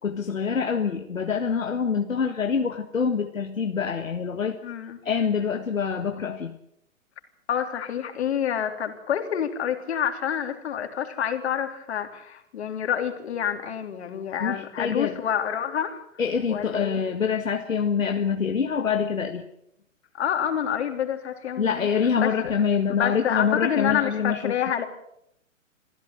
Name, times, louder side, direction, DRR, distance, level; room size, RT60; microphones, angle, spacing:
voice 1, 0.0-4.6 5.0-6.5 14.4-15.2 16.2-19.5 21.6-24.6, left 6 dB, 75° left, 5 dB, 1.8 m, -25 dB
voice 2, 4.6-5.0 7.5-16.0 16.5-17.0 20.2-21.9 22.2-22.5 22.9-24.9, left 9 dB, 55° left, 6 dB, 3.6 m, -28 dB
26.0 x 15.5 x 8.0 m, 0.77 s
figure-of-eight pair, 125°, 40 cm